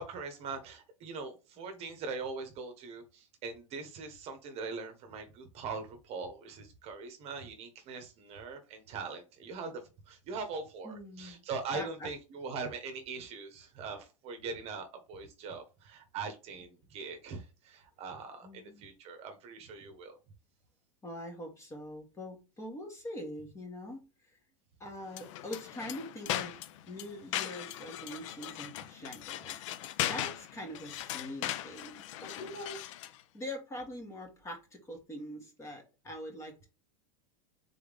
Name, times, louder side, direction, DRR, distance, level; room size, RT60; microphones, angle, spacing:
voice 1, 0.0-9.7 10.1-20.2, right 4 dB, 40° right, 1.0 m, -41 dB
voice 2, 1.6-1.9 10.8-11.4 11.7-12.1 18.4-18.9 21.0-24.0 24.3-24.4 24.8-26.6 26.9-32.8 33.3-36.7, left 1 dB, 15° left, 1.5 m, -43 dB
sound 1, 25.1-33.2, left 13 dB, 65° left, 0.5 m, -39 dB
3.8 x 3.4 x 3.6 m
supercardioid pair, 135°, 17 cm